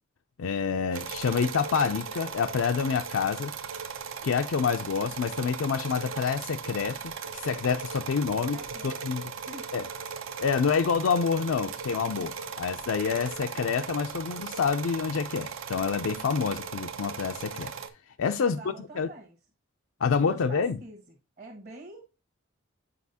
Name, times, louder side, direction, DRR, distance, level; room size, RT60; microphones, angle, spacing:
voice 1, 0.4-3.5 4.2-8.6 8.8-9.2 9.7-9.8 10.4-17.7 18.2-18.6 19.0-19.1 20.0-20.8, left 6 dB, 80° left, 0.4 m, -27 dB
sound 1, 0.9-17.9, right 6 dB, 80° right, 0.7 m, -38 dB
voice 2, 8.5-9.1 9.4-9.7 18.4-19.4 20.3-21.0 21.4-22.0, right 2 dB, 45° right, 1.2 m, -45 dB
8.3 x 4.9 x 2.7 m
head